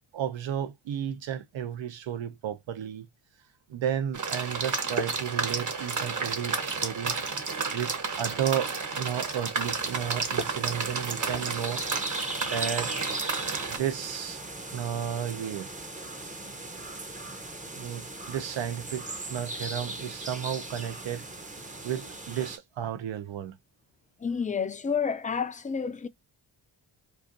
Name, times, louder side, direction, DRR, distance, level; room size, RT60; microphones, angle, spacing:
voice 1, 0.1-3.1 3.7-7.2 7.7-11.8 12.5-12.9 13.7-14.4 14.7-15.7 17.7-21.2 21.8-23.6, right 9 dB, 75° right, 0.8 m, -33 dB
sound 1, 4.1-13.8, right 4 dB, 40° right, 1.1 m, -31 dB
sound 2, 9.6-22.6, right 2 dB, 15° right, 0.7 m, -39 dB
voice 2, 24.2-26.1, left 6 dB, 20° left, 0.4 m, -29 dB
4.4 x 2.5 x 2.5 m
cardioid pair, 90°, 45 cm